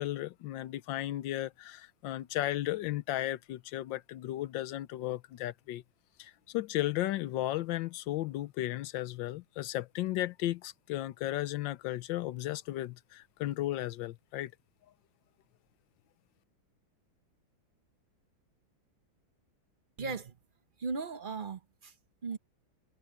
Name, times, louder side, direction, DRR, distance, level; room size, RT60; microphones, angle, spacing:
voice 1, 0.0-5.8 6.2-14.5, left 15 dB, 75° left, 1.4 m, -35 dB
voice 2, 20.0-20.4 20.8-21.9 22.2-22.4, right 4 dB, 40° right, 0.7 m, -37 dB
omnidirectional pair, 2.2 m